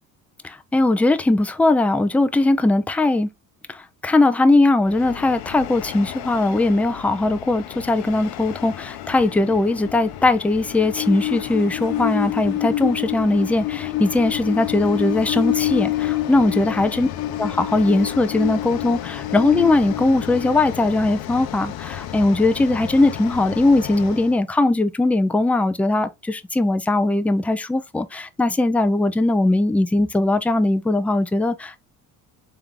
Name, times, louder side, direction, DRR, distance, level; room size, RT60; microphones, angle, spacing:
voice 1, 0.4-3.3 3.7-17.1 17.4-31.8, left 2 dB, 5° left, 0.4 m, -20 dB
Train, 4.9-24.3, left 13 dB, 65° left, 0.7 m, -29 dB
3.5 x 3.0 x 3.6 m
supercardioid pair, 85°, 39 cm